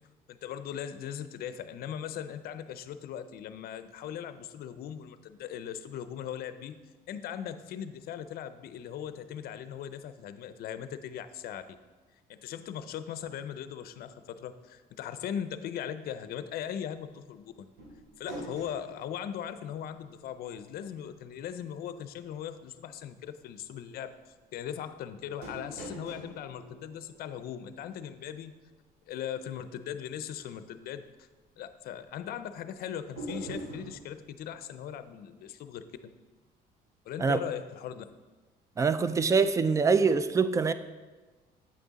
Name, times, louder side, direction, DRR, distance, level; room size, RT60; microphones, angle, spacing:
voice 1, 0.3-6.8 7.1-11.8 12.3-17.7 18.2-24.1 24.5-28.5 29.1-31.3 31.6-36.1 37.1-38.1, left 9 dB, 65° left, 12 dB, 0.5 m, -39 dB
sound 1, 17.8-20.4 20.7-20.8 25.4-27.9 33.2-34.0, right 1 dB, 70° right, 2.5 m, -43 dB
voice 2, 38.8-40.7, right 5 dB, 20° right, 12 dB, 0.4 m, -24 dB
8.7 x 6.0 x 4.0 m, 1.3 s
cardioid pair, 110°, 17 cm